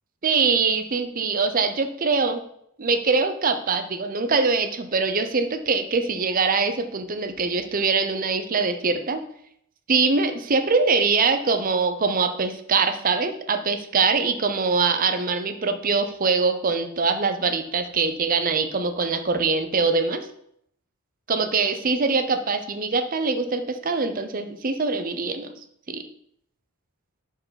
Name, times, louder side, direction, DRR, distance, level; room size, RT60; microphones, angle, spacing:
voice 1, 0.2-2.4 2.8-9.2 9.9-20.3 21.3-25.5 25.9-26.1, right 4 dB, 40° right, 8 dB, 0.7 m, -23 dB
5.4 x 4.8 x 5.7 m, 0.70 s
head